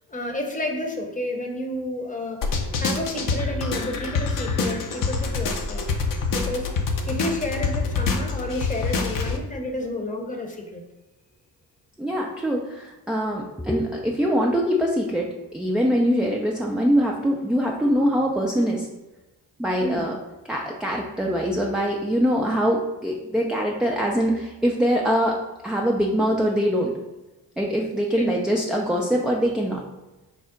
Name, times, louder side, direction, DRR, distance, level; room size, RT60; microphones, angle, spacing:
voice 1, 0.1-2.5 2.8-5.9 6.3-6.7 7.0-10.8 19.8-20.1 28.1-28.3, left 1 dB, 20° left, 1 dB, 0.9 m, -31 dB
sound 1, 2.4-9.4, left 4 dB, 50° left, 0.7 m, -26 dB
voice 2, 12.0-18.9 19.6-20.2 20.5-26.9 27.6-29.8, equal, ahead, -2 dB, 0.4 m, -23 dB
4.6 x 2.0 x 3.7 m, 1.0 s
hypercardioid pair, 45°, 43 cm